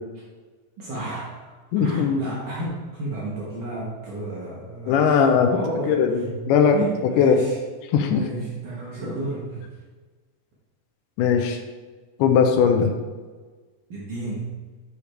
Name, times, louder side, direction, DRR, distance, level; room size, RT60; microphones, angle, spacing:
voice 1, 0.8-1.4 1.8-5.9 6.2-6.4 6.7-7.5 8.1-9.6 13.9-14.5, right 2 dB, 55° right, -6 dB, 1.2 m, -32 dB
voice 2, 1.7-2.2 4.9-5.6 5.9-6.8 7.2-7.4 7.9-8.2 11.2-11.6 12.2-12.9, left 6 dB, 85° left, 4 dB, 2.3 m, -19 dB
11.0 x 5.0 x 3.2 m, 1.4 s
omnidirectional pair, 3.7 m